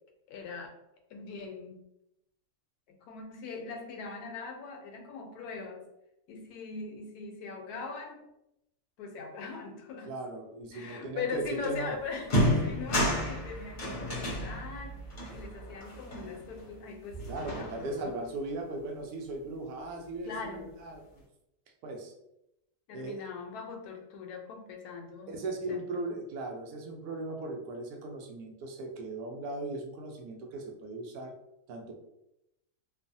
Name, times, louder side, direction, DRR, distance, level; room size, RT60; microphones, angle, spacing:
voice 1, 0.3-0.8 1.1-1.8 2.9-5.8 6.3-8.2 9.0-10.1 10.7-15.1 15.3-17.3 17.5-18.2 20.2-20.7 22.9-26.0, left 5 dB, 75° left, 3 dB, 1.0 m, -41 dB
voice 2, 10.1-11.9 17.3-21.0 21.8-22.1 22.9-23.2 25.3-31.3 31.7-32.0, right 2 dB, 75° right, 2 dB, 1.0 m, -38 dB
sound 1, 11.6-11.8 12.2-16.8 17.1-18.1, equal, 40° left, 0.7 m, -32 dB
3.0 x 2.0 x 2.6 m, 0.85 s
omnidirectional pair, 1.7 m